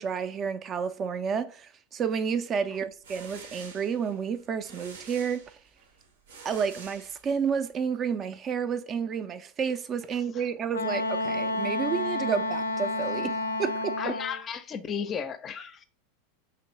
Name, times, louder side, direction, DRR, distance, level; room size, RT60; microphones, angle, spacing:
voice 1, 0.0-5.5 6.4-14.0, right 6 dB, 35° right, 0.4 m, -30 dB
sound 1, 2.8-7.6, right 4 dB, 75° right, 0.7 m, -48 dB
Wind instrument woodwind instrument, 10.7-14.4, left 2 dB, 90° left, 0.4 m, -30 dB
voice 2, 14.0-15.8, left 7 dB, 30° left, 0.5 m, -34 dB
3.2 x 2.9 x 3.1 m
hypercardioid pair, 95°, 0 cm